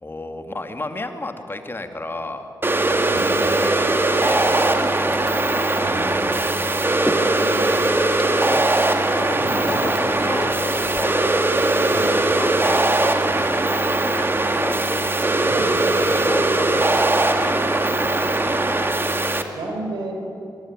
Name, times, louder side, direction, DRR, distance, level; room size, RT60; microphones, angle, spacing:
voice 1, 0.0-2.5 3.6-5.9 7.1-7.9 8.4-8.6 9.1-11.3 12.3-13.6 14.1-14.3 14.6-14.8 16.0-17.0 17.3-17.5 18.0-18.6, left 2 dB, 30° left, 7 dB, 2.4 m, -33 dB
sound 1, 2.6-19.4, right 2 dB, 30° right, 2.2 m, -20 dB
sound 2, 3.5-11.6, equal, ahead, 1.7 m, -37 dB
voice 2, 5.8-6.1 9.4-9.9 11.9-12.1 15.5-15.7 19.6-20.1, right 2 dB, 85° right, 3 dB, 5.3 m, -31 dB
23.5 x 21.0 x 9.8 m, 2.7 s
cardioid pair, 60°, 8 cm